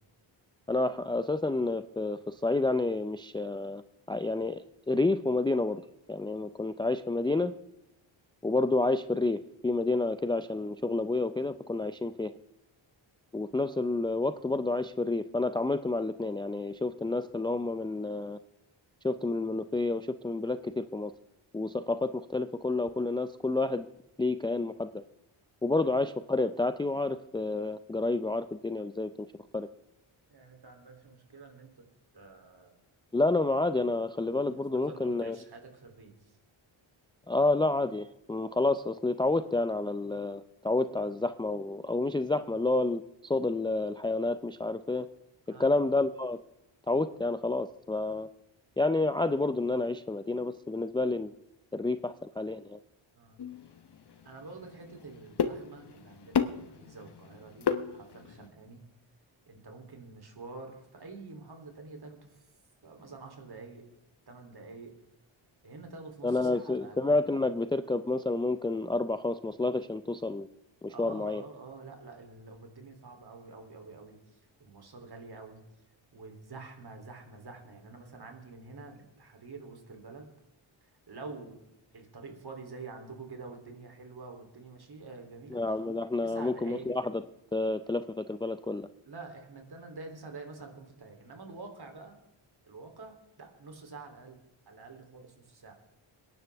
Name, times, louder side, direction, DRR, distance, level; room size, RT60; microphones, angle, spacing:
voice 1, 0.7-3.8 4.1-5.8 6.1-7.5 8.4-12.3 13.3-18.4 19.0-21.1 21.5-23.9 24.2-25.0 25.6-29.1 29.5-29.7 33.1-35.4 37.3-45.1 45.6-46.4 46.9-48.3 48.8-51.3 51.7-52.8 66.2-70.5 70.8-71.4 85.5-87.2 87.5-88.9, left 2 dB, 10° left, 11 dB, 0.4 m, -29 dB
voice 2, 30.3-31.8 32.1-32.8 34.8-36.1 45.5-45.8 53.1-53.4 54.2-58.8 59.5-62.4 62.8-63.8 64.3-64.9 65.6-67.0 70.9-74.2 74.6-75.6 76.1-80.3 80.8-81.6 81.9-85.6 86.2-87.0 89.0-92.2 92.6-94.4 94.6-95.7, right 3 dB, 50° right, 4 dB, 3.3 m, -47 dB
sound 1, 53.4-58.5, left 7 dB, 50° left, 1.1 m, -34 dB
23.5 x 11.0 x 3.5 m, 0.88 s
cardioid pair, 85°, 50 cm